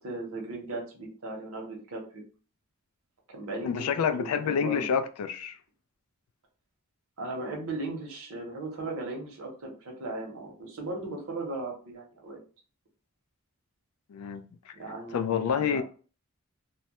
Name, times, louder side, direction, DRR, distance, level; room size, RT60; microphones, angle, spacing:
voice 1, 0.0-2.2 3.3-4.9 7.2-12.4 14.7-15.8, right 2 dB, 65° right, 0.8 m, -37 dB
voice 2, 3.6-5.6 14.1-14.7 15.1-15.8, left 7 dB, 85° left, 0.3 m, -28 dB
2.2 x 2.0 x 2.8 m
head